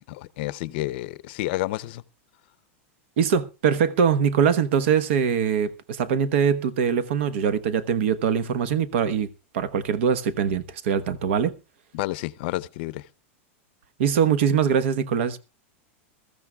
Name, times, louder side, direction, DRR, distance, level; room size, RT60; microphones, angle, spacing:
voice 1, 0.1-2.0 11.9-13.1, left 18 dB, 50° left, 0.6 m, -30 dB
voice 2, 3.2-9.3 9.5-11.6 14.0-15.4, right 7 dB, 65° right, 1.1 m, -22 dB
21.0 x 14.0 x 2.3 m
supercardioid pair, 165°, 7 cm